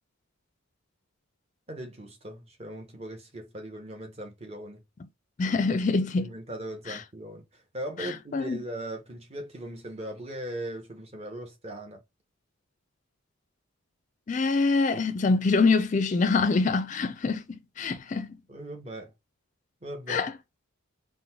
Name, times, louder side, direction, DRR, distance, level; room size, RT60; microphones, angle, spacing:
voice 1, 1.7-4.8 6.2-12.0 18.5-19.1 19.8-20.2, right 1 dB, 30° right, 0.9 m, -39 dB
voice 2, 5.4-6.3 6.9-7.0 8.0-8.6 14.3-18.4 20.1-20.3, left 4 dB, 35° left, 0.4 m, -25 dB
3.9 x 2.1 x 4.4 m
head